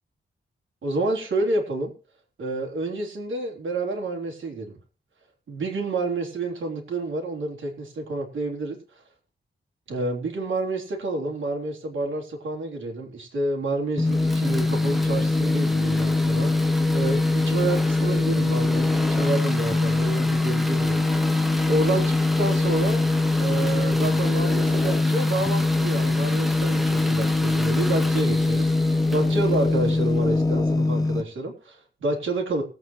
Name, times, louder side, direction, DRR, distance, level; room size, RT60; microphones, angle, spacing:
voice 1, 0.8-1.9 2.4-4.8 5.5-9.0 9.9-21.1 21.4-23.0 23.4-32.6, right 2 dB, 85° right, 2 dB, 3.6 m, -29 dB
sound 1, 14.0-31.2, left 2 dB, 20° left, 1.4 m, -22 dB
sound 2, 14.0-30.2, equal, ahead, 1.1 m, -36 dB
20.5 x 8.5 x 3.1 m, 0.36 s
wide cardioid pair, 135°, 20 cm